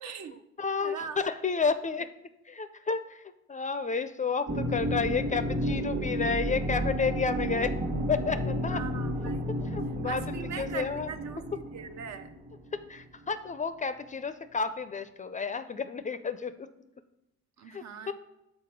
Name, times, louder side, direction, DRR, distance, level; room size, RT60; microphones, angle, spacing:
voice 1, 0.0-0.3 0.8-1.2 8.7-9.7 10.1-12.3 17.6-18.1, right 7 dB, 65° right, 10 dB, 0.6 m, -41 dB
voice 2, 0.6-2.1 2.5-3.2 3.5-7.7 8.1-8.8 9.6-11.1 11.5-11.6 12.7-16.7 17.7-18.1, left 5 dB, 25° left, 11 dB, 0.4 m, -31 dB
sound 1, 4.5-13.0, equal, 30° right, 1.3 m, -32 dB
5.9 x 4.3 x 5.8 m, 0.88 s
cardioid pair, 90°, 30 cm